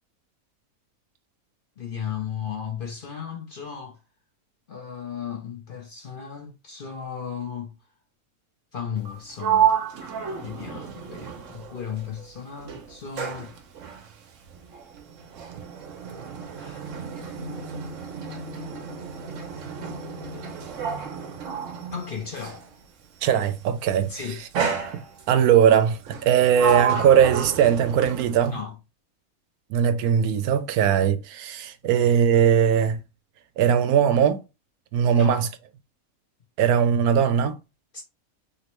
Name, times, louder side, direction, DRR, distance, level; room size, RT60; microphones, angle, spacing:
voice 1, 1.8-4.0 4.7-7.7 8.7-9.7 10.4-13.5 16.6-17.0 21.9-22.6 24.1-24.4 28.3-28.8 35.1-35.4 37.9-38.0, left 7 dB, 50° left, 0.7 m, -35 dB
Sliding door, 9.0-12.3 12.6-22.7 23.6-23.9 24.5-25.5 26.1-28.6, right 7 dB, 65° right, 1.0 m, -30 dB
voice 2, 23.2-24.1 24.9-25.0 25.3-28.6 29.7-33.0 33.6-34.4 34.9-35.5 36.6-37.6, right 8 dB, 85° right, 1.1 m, -20 dB
3.1 x 3.0 x 3.0 m
omnidirectional pair, 1.5 m